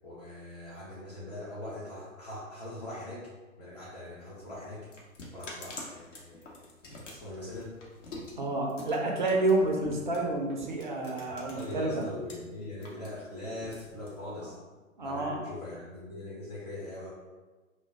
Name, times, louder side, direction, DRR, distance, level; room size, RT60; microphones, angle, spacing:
voice 1, 0.0-3.3 3.6-4.9 5.3-6.7 7.1-7.8 11.3-14.6 15.0-17.1, left 1 dB, 30° left, -9 dB, 0.5 m, -41 dB
sound 1, 4.2-12.3 12.7-14.6, left 2 dB, 60° left, 0.8 m, -46 dB
voice 2, 8.4-12.0 15.0-15.4, right 2 dB, 40° right, 0 dB, 0.4 m, -29 dB
2.2 x 2.2 x 3.4 m, 1.3 s
figure-of-eight pair, 120°, 41 cm